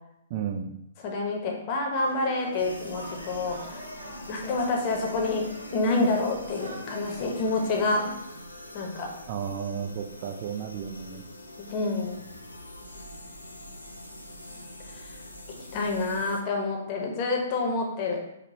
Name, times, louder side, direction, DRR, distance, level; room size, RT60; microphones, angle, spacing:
voice 1, 0.3-0.8 9.3-11.2, right 7 dB, 40° right, 4 dB, 0.4 m, -33 dB
voice 2, 1.0-3.8 4.3-5.4 5.7-8.0 8.7-9.1 11.6-12.2 14.9-15.1 15.5-18.2, left 3 dB, 35° left, 0 dB, 0.8 m, -28 dB
sound 1, 2.0-8.3, equal, 75° right, 1.0 m, -42 dB
sound 2, 2.6-16.4, left 1 dB, 85° left, 0.5 m, -44 dB
4.7 x 2.2 x 2.8 m, 0.82 s
figure-of-eight pair, 120°, 0 cm